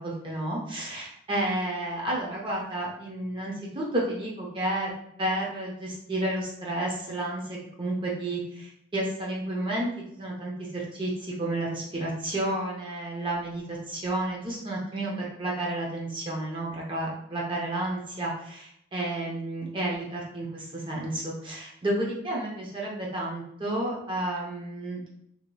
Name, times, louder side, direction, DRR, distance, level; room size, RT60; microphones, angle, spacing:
voice 1, 0.0-4.9 5.2-9.9 10.2-25.2, right 1 dB, 25° right, -3 dB, 0.5 m, -31 dB
3.1 x 2.7 x 2.2 m, 0.73 s
head